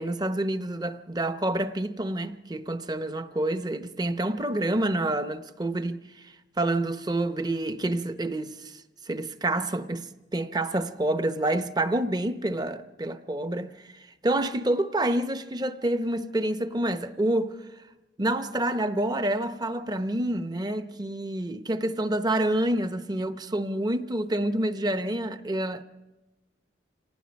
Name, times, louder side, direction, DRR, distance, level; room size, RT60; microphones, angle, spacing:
voice 1, 0.0-6.0 6.6-8.7 9.1-10.1 10.3-13.7 14.2-17.6 18.2-25.8, right 1 dB, 25° right, 0.8 m, -28 dB
26.5 x 18.5 x 5.3 m
head